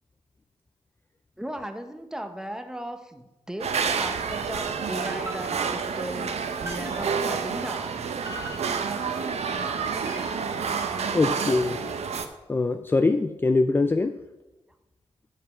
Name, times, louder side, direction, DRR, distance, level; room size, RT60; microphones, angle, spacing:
voice 1, 1.4-8.1, right 1 dB, 5° right, 7 dB, 0.8 m, -37 dB
sound 1, 3.6-12.3, right 6 dB, 70° right, 0.8 m, -29 dB
sound 2, 5.1-6.0 6.7-7.3 8.3-9.1 9.9-10.5, equal, 25° right, 2.4 m, -41 dB
voice 2, 11.1-11.8 12.5-14.1, left 3 dB, 20° left, 8 dB, 0.3 m, -23 dB
8.0 x 7.3 x 5.7 m, 1.0 s
wide cardioid pair, 145°, 11 cm